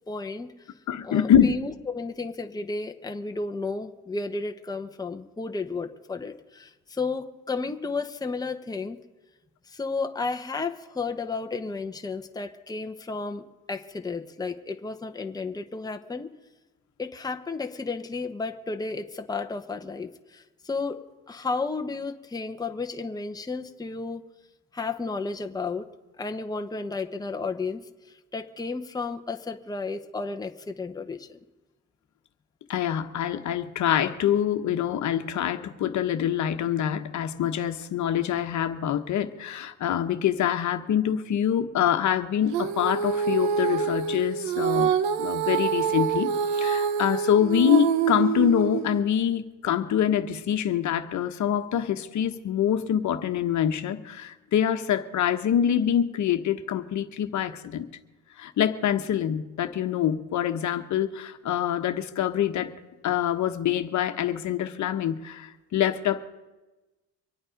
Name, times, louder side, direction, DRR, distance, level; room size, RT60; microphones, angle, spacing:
voice 1, 0.1-0.7 1.0-9.0 9.7-13.4 13.7-16.3 17.0-24.2 24.7-25.9 26.2-27.8 28.1-31.4, left 4 dB, 10° left, 5 dB, 1.0 m, -33 dB
voice 2, 0.9-1.5 32.7-57.9 58.4-62.7 63.0-66.2, left 9 dB, 55° left, 7 dB, 1.2 m, -25 dB
Female singing, 42.5-49.0, right 7 dB, 90° right, 0.9 m, -26 dB
24.5 x 8.9 x 5.2 m, 1.1 s
supercardioid pair, 90°, 34 cm